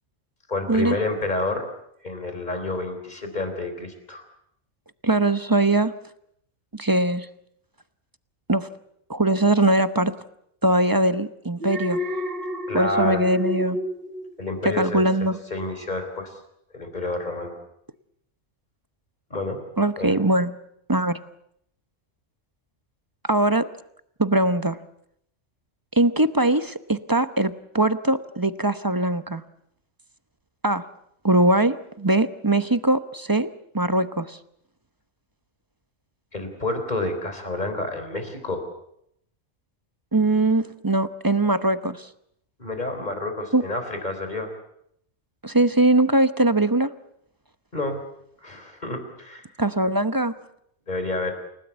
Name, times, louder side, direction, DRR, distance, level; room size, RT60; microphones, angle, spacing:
voice 1, 0.5-1.7 2.0-4.2 12.7-13.2 14.4-15.0 15.5-16.4 16.7-17.6 19.3-19.6 20.0-20.2 36.3-38.7 42.6-44.5 47.7-48.0 48.4-49.5 50.9-51.3, left 2 dB, 35° left, 7 dB, 4.0 m, -29 dB
voice 2, 5.0-5.9 6.7-7.3 8.5-8.7 9.1-10.1 10.6-12.0 12.7-13.8 14.6-15.4 19.8-20.5 20.9-21.2 23.3-23.7 24.2-24.8 25.9-29.4 30.6-30.9 31.2-33.5 33.7-34.4 40.1-42.1 43.5-43.6 45.4-46.9 49.6-50.4, right 2 dB, 20° right, 12 dB, 0.8 m, -21 dB
Alarm, 11.6-14.9 15.3-15.6, left 1 dB, 50° right, 1.4 m, -30 dB
29.0 x 17.0 x 8.2 m, 0.74 s
omnidirectional pair, 1.3 m